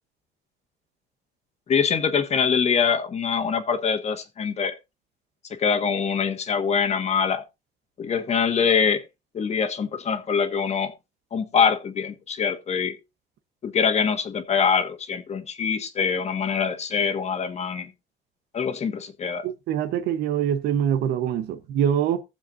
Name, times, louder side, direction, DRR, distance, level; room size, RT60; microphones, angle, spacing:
voice 1, 1.7-4.7 5.6-7.4 8.0-9.0 9.3-10.9 11.3-12.9 13.6-17.9 18.5-19.4, left 6 dB, 40° left, 1.6 m, -24 dB
voice 2, 19.4-22.2, right 9 dB, 80° right, 1.1 m, -24 dB
19.5 x 7.2 x 2.6 m
cardioid pair, 110°, 17 cm